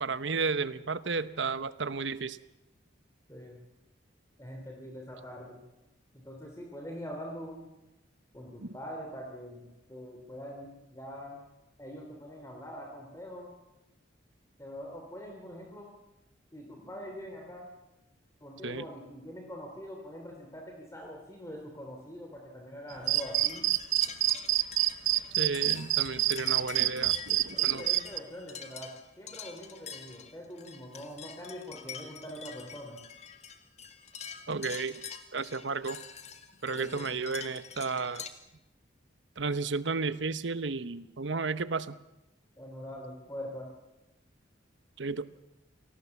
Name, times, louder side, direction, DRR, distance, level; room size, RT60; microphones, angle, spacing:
voice 1, 0.0-2.4 8.6-8.7 18.6-18.8 25.4-27.8 34.5-35.0 35.3-36.0 36.6-38.2 39.4-42.0 45.0-45.3, right 4 dB, 70° right, 13 dB, 1.0 m, -33 dB
voice 2, 4.4-5.6 6.1-7.7 8.3-11.4 11.8-13.5 14.6-15.9 16.5-17.7 18.4-23.7 27.5-33.0 36.7-37.1 42.6-43.7, equal, 15° left, 0 dB, 3.3 m, -43 dB
sound 1, 23.0-38.3, left 7 dB, 35° left, 1.8 m, -46 dB
sound 2, 23.1-28.2, right 16 dB, 90° right, 0.7 m, -26 dB
27.0 x 19.0 x 7.2 m, 0.97 s
head